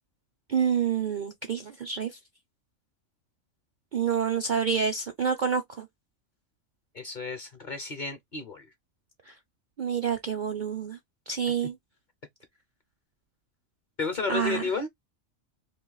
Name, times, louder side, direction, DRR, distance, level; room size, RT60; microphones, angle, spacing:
voice 1, 0.5-2.2 3.9-5.9 9.3-9.4 9.8-11.0 11.3-11.7 14.3-14.6, right 7 dB, 55° right, 0.5 m, -28 dB
voice 2, 6.9-8.7 11.5-11.6 14.0-14.9, left 4 dB, 45° left, 0.7 m, -32 dB
2.7 x 2.4 x 3.8 m
omnidirectional pair, 1.4 m